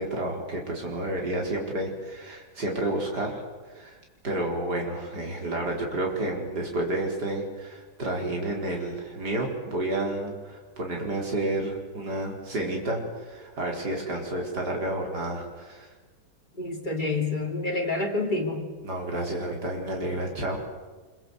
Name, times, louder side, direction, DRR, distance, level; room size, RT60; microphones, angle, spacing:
voice 1, 0.0-3.4 3.7-4.0 4.2-15.9 18.8-20.6, right 1 dB, 55° right, 0 dB, 5.0 m, -30 dB
voice 2, 16.5-18.7, left 3 dB, 20° left, 2 dB, 3.3 m, -28 dB
25.5 x 23.0 x 8.1 m, 1.3 s
omnidirectional pair, 2.2 m